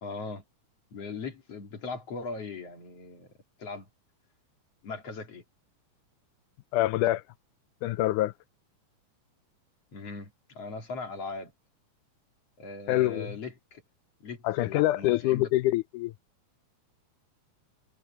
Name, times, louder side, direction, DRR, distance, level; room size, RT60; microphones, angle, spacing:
voice 1, 0.0-0.4 0.9-3.3 3.6-3.9 4.8-5.4 9.9-11.5 12.6-13.8 14.2-15.5, left 3 dB, 50° left, 3.6 m, -39 dB
voice 2, 6.7-7.2 7.8-8.3 12.9-13.3 14.4-16.1, left 16 dB, 85° left, 2.1 m, -25 dB
omnidirectional pair, 3.6 m